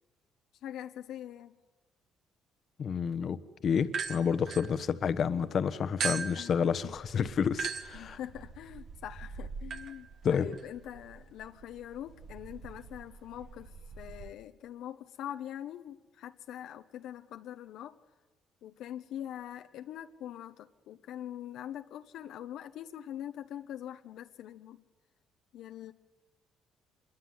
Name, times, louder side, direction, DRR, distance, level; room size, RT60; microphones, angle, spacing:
voice 1, 0.6-1.6 6.3-6.9 7.9-17.9 18.6-24.8 25.5-25.9, left 11 dB, 75° left, 7 dB, 1.1 m, -43 dB
voice 2, 2.8-3.4 3.6-8.2 10.2-10.5, left 7 dB, 50° left, 12 dB, 1.3 m, -29 dB
sound 1, 3.8-5.3 6.0-14.3, right 5 dB, 55° right, 2.3 m, -41 dB
26.0 x 21.5 x 9.6 m, 1.2 s
cardioid pair, 100°, 0 cm